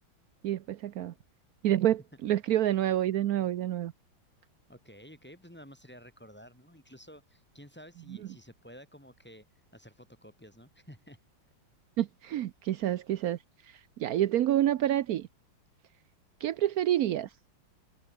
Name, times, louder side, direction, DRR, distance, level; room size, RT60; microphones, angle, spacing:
voice 1, 0.4-1.1 1.6-3.9 12.0-13.4 14.0-15.3 16.4-17.3, right 12 dB, 85° right, 0.8 m, -28 dB
voice 2, 4.7-9.5 9.7-11.2, equal, 5° left, 3.2 m, -52 dB
omnidirectional pair, 2.4 m